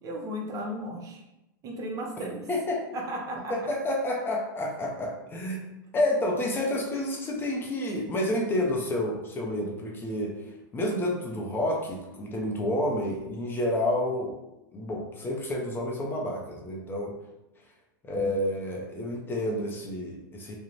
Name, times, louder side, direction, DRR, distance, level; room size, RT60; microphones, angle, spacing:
voice 1, 0.0-1.2 1.6-2.5 2.9-3.5, equal, 30° right, 1 dB, 0.5 m, -35 dB
voice 2, 2.5-2.9 3.5-5.7 5.9-14.4 14.7-17.1 18.0-20.6, left 1 dB, 20° left, -1 dB, 0.4 m, -29 dB
2.5 x 2.0 x 3.0 m, 0.94 s
hypercardioid pair, 115°, 11 cm